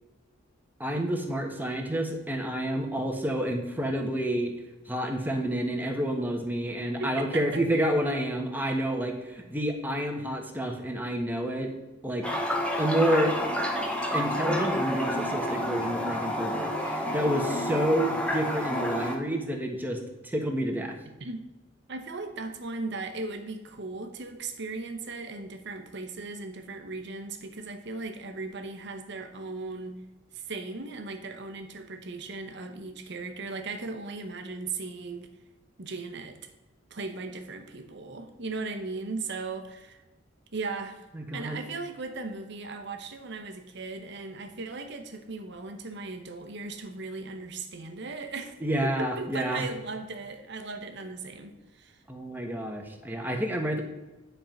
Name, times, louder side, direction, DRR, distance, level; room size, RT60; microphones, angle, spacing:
voice 1, 0.8-4.5 4.9-11.7 12.0-12.2 12.8-13.3 14.1-20.9 41.1-41.6 48.6-49.6 52.1-53.8, right 1 dB, 10° right, 3 dB, 1.1 m, -29 dB
voice 2, 7.0-7.6 21.2-21.4 21.9-30.0 30.3-35.3 35.8-36.5 36.9-40.0 40.5-41.0 41.3-52.0, right 3 dB, 60° right, 7 dB, 1.0 m, -37 dB
Toilet flush, 12.2-19.2, equal, 5° left, 1.1 m, -29 dB
9.7 x 4.6 x 5.3 m, 1.1 s
head